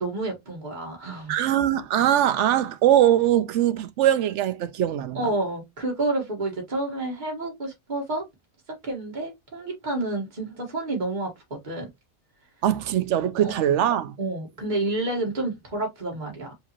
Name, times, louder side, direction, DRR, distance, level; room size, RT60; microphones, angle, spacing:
voice 1, 0.0-1.4 5.1-8.2 8.8-11.9 13.4-13.5 14.2-16.5, right 2 dB, 35° right, 1.8 m, -29 dB
voice 2, 1.3-5.3 12.6-14.1, right 11 dB, 65° right, 0.9 m, -22 dB
5.0 x 3.0 x 3.0 m
omnidirectional pair, 1.4 m